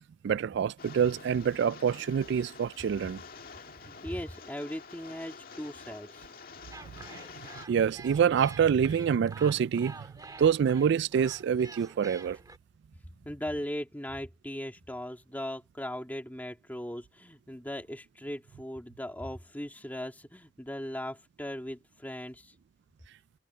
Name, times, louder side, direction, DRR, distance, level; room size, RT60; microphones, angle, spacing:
voice 1, 0.2-3.2 7.7-10.0 10.4-12.4, right 7 dB, 65° right, 0.3 m, -26 dB
Rain, 0.8-7.7, left 5 dB, 50° left, 1.9 m, -48 dB
voice 2, 3.8-6.3 13.2-22.5, left 1 dB, 10° left, 2.3 m, -38 dB
sound 1, 6.7-12.6, right 3 dB, 20° right, 1.7 m, -48 dB
head